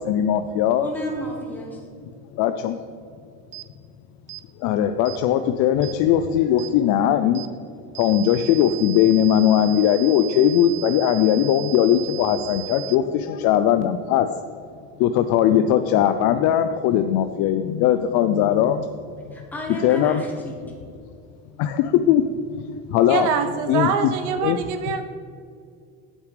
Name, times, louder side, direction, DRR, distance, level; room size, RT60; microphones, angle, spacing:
voice 1, 0.0-0.9 2.4-2.8 4.6-7.4 8.0-14.3 15.0-18.9 19.8-20.2 21.6-22.2 22.9-23.3 23.7-23.9 24.4-24.6, left 10 dB, 60° left, 9 dB, 0.5 m, -19 dB
voice 2, 0.8-1.8 19.3-20.6, equal, 5° left, -2 dB, 1.5 m, -32 dB
sound 1, 3.5-3.7 4.3-4.5 5.1-5.2 5.8-6.0 6.6-6.7 7.4-7.5 8.0-13.0, right 24 dB, 35° right, 0.6 m, -36 dB
voice 3, 23.1-25.0, right 7 dB, 65° right, 8 dB, 0.9 m, -24 dB
8.4 x 8.2 x 3.3 m, 2.3 s
cardioid pair, 140°, 33 cm